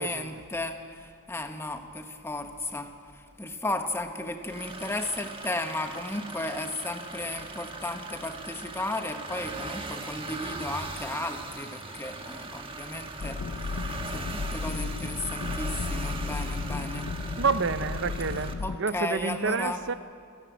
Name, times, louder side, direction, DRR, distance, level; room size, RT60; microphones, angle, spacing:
voice 1, 0.0-17.1 18.6-19.8, left 2 dB, 10° left, 6 dB, 1.2 m, -34 dB
sound 1, 4.5-18.5, right 3 dB, 25° right, 1.3 m, -39 dB
sound 2, 13.2-18.8, left 4 dB, 60° left, 0.4 m, -34 dB
voice 2, 17.4-19.9, right 5 dB, 55° right, 13 dB, 0.7 m, -29 dB
27.5 x 9.9 x 9.5 m, 2.2 s
head